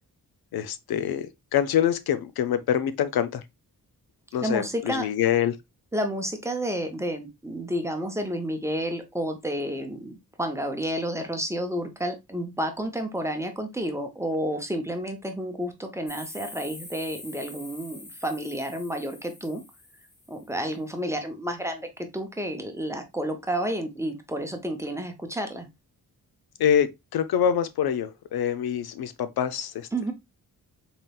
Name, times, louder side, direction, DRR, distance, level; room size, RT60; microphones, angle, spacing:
voice 1, 0.5-3.4 4.3-5.6 26.6-29.9, left 9 dB, 90° left, 0.6 m, -25 dB
voice 2, 4.4-5.1 5.9-19.6 20.3-25.7 29.9-30.1, equal, 10° right, 0.7 m, -30 dB
sound 1, 16.1-20.5, left 2 dB, 30° left, 1.5 m, -45 dB
3.9 x 3.7 x 2.2 m
wide cardioid pair, 130°, 36 cm